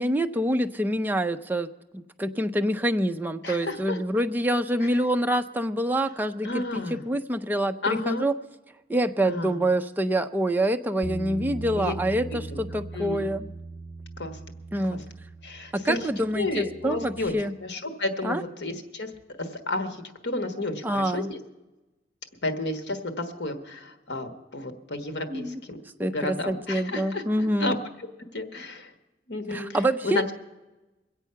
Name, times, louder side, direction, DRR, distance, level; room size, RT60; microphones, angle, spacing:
voice 1, 0.0-1.7 1.9-8.3 8.9-13.5 14.7-15.0 15.7-17.5 18.2-18.4 20.8-21.3 25.3-25.6 26.0-27.8 29.5-30.3, right 1 dB, 10° right, 6 dB, 0.4 m, -26 dB
voice 2, 3.4-4.0 6.4-7.0 7.8-8.3 9.3-9.6 11.8-11.9 12.5-12.6 12.9-13.3 14.2-14.4 14.9-15.0 15.4-17.3 17.6-19.1 19.4-21.4 22.4-25.8 26.1-27.8 28.3-28.9 29.3-29.8 30.0-30.3, left 2 dB, 65° left, 6 dB, 1.3 m, -31 dB
Bass guitar, 11.0-17.3, right 3 dB, 40° left, 2.4 m, -39 dB
22.5 x 8.2 x 5.7 m, 1.1 s
head